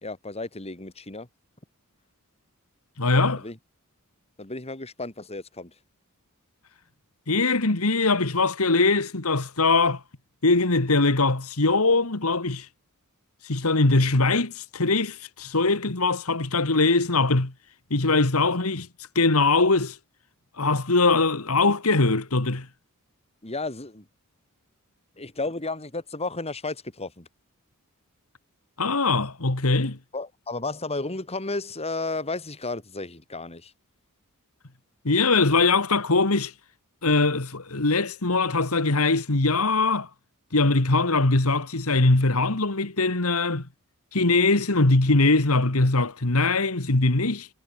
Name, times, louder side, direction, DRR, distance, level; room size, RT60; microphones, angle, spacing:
voice 1, 0.0-1.3 3.4-3.6 4.4-5.7 23.4-24.1 25.1-27.3 30.1-33.7, left 3 dB, 30° left, 3.0 m, -33 dB
voice 2, 3.0-3.4 7.3-10.0 10.4-12.7 13.4-17.5 17.9-18.9 19.2-20.0 20.6-22.7 28.8-30.0 35.1-36.5 37.0-40.1 40.5-43.7 44.1-47.5, left 3 dB, 70° left, 2.0 m, -22 dB
head